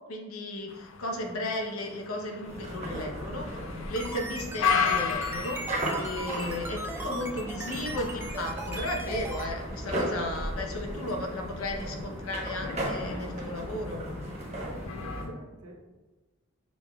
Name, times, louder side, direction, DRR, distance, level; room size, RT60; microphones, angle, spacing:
voice 1, 0.1-3.5 3.9-5.6 6.0-14.0, left 1 dB, 80° left, 2 dB, 0.8 m, -34 dB
sound 1, 0.7-15.2, left 6 dB, 60° left, 0.4 m, -36 dB
sound 2, 2.4-15.3, right 1 dB, 30° right, 0.9 m, -36 dB
sound 3, 3.7-9.5, right 1 dB, 10° right, 0.4 m, -38 dB
voice 2, 14.5-15.8, right 1 dB, 80° right, 2 dB, 0.8 m, -50 dB
6.2 x 3.5 x 2.3 m, 1.2 s
head